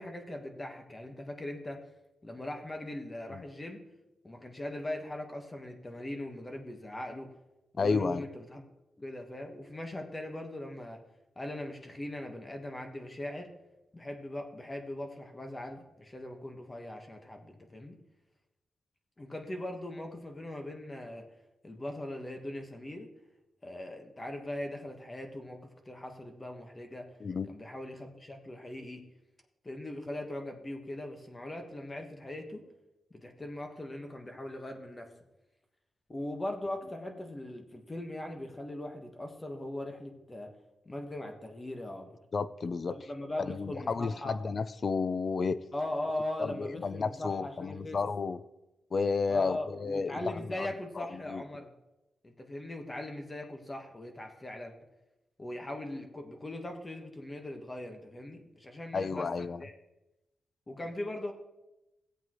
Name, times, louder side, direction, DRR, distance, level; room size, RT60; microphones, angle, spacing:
voice 1, 0.0-1.8 2.2-3.8 4.2-7.3 7.7-8.6 9.0-11.0 11.3-13.5 13.9-18.0 19.2-21.3 21.6-23.1 23.6-25.6 25.8-27.1 27.5-29.0 29.6-32.6 33.1-35.1 36.1-40.5 40.8-42.2 42.8-44.3 45.7-48.0 49.3-51.7 52.2-54.7 55.4-59.3 59.6-59.7 60.7-61.3, left 1 dB, 20° left, 1.3 m, -40 dB
voice 2, 7.8-8.2 27.2-27.5 42.3-43.0 43.5-45.6 46.4-48.4 48.9-50.7 51.0-51.4 58.9-59.6, left 4 dB, 40° left, 0.4 m, -32 dB
16.5 x 8.1 x 3.1 m
wide cardioid pair, 135°, 0 cm